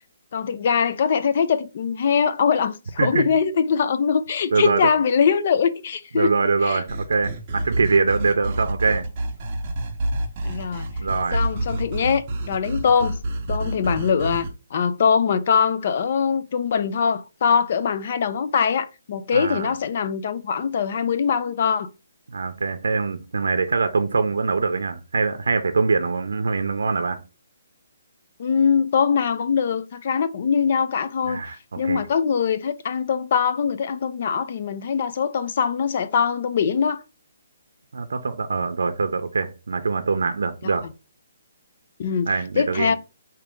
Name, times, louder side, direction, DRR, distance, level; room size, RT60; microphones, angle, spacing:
voice 1, 0.3-6.3 6.6-6.8 10.4-10.9 11.3-13.2 13.5-21.9 28.4-31.4 31.8-37.0 42.0-43.0, left 6 dB, 40° left, 0.4 m, -22 dB
voice 2, 4.5-4.9 6.1-9.0 11.0-11.4 19.3-19.7 22.3-27.2 31.3-32.0 37.9-40.9 42.3-42.9, right 4 dB, 90° right, 0.5 m, -23 dB
sound 1, 6.9-14.5, right 1 dB, 30° right, 0.8 m, -28 dB
4.9 x 2.8 x 3.5 m
hypercardioid pair, 170°, 0 cm